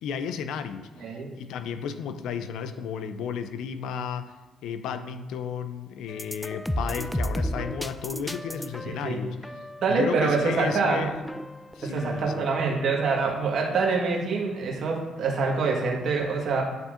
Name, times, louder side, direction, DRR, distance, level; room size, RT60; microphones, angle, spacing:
voice 1, 0.0-4.3 4.6-9.4 9.9-11.1 11.7-12.5, left 7 dB, 85° left, 10 dB, 0.4 m, -33 dB
voice 2, 1.0-1.3 9.0-9.2 9.8-11.2 11.8-16.6, right 4 dB, 65° right, -1 dB, 1.4 m, -25 dB
sound 1, 6.1-12.5, equal, 5° left, 0.3 m, -34 dB
10.5 x 4.4 x 2.5 m, 1.3 s
cardioid pair, 90°, 0 cm